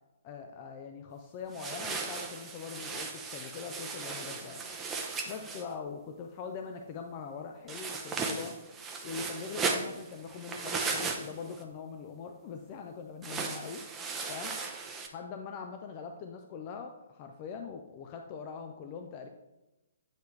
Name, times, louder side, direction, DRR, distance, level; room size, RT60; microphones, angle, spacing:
voice 1, 0.2-4.6 5.3-8.6 9.0-13.8 14.3-14.5 15.1-19.3, left 5 dB, 30° left, 4 dB, 0.4 m, -42 dB
sound 1, 1.5-5.6 7.7-11.6 13.2-15.1, right 4 dB, 15° right, 0.6 m, -36 dB
8.7 x 3.4 x 3.2 m, 0.99 s
figure-of-eight pair, 125°, 0 cm